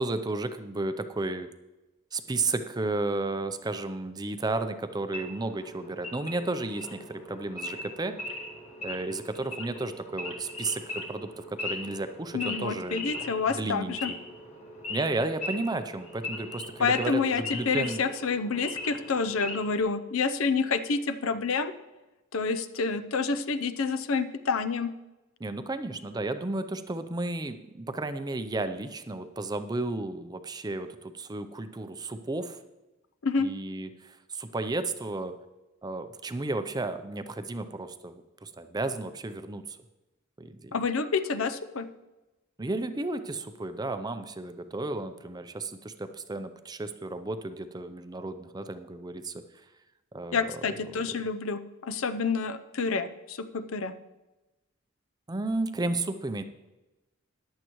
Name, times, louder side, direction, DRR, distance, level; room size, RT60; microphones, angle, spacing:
voice 1, 0.0-1.5 2.1-8.2 8.8-13.1 13.5-14.2 14.9-18.0 25.4-32.6 33.4-35.3 35.8-39.8 40.4-40.8 42.6-49.4 50.1-50.5 50.9-51.0 55.3-56.4, right 2 dB, 20° right, 10 dB, 0.5 m, -33 dB
Wild animals / Idling, 5.1-19.8, left 2 dB, 30° left, 1.7 m, -39 dB
voice 2, 12.3-14.1 16.8-21.7 22.3-24.9 33.2-33.5 40.7-41.9 50.3-53.9, left 4 dB, 65° left, 11 dB, 0.6 m, -28 dB
14.5 x 10.5 x 3.0 m, 1.1 s
head